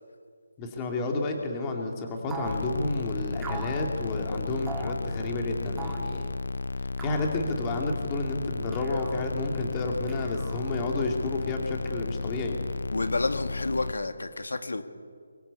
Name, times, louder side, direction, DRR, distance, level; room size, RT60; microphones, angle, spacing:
voice 1, 0.6-6.3 7.0-12.6, left 2 dB, 15° left, 2 dB, 2.5 m, -31 dB
sound 1, 2.3-2.6 3.4-3.8 4.7-5.0 5.8-6.1 7.0-7.3 8.7-9.2 10.1-10.8, right 3 dB, 5° right, 1.8 m, -39 dB
sound 2, 2.5-13.9, left 3 dB, 65° left, 0.5 m, -34 dB
voice 2, 12.9-14.8, left 3 dB, 90° left, 9 dB, 2.0 m, -30 dB
23.5 x 22.5 x 8.4 m, 2.1 s
hypercardioid pair, 175°, 0 cm